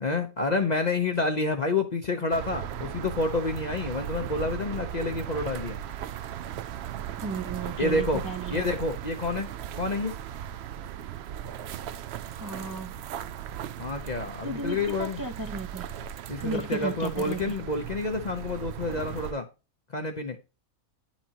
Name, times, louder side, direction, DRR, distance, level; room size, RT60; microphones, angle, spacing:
voice 1, 0.0-5.8 7.8-8.2 8.5-9.5 9.8-10.1 13.8-15.2 16.3-19.5 19.9-20.4, left 3 dB, 40° left, 0.7 m, -28 dB
sound 1, 2.3-19.3, right 10 dB, 65° right, 0.6 m, -37 dB
voice 2, 7.2-8.7 12.4-12.9 14.4-15.9 16.4-17.6, right 3 dB, 25° right, 0.4 m, -34 dB
9.7 x 5.9 x 2.8 m
omnidirectional pair, 1.5 m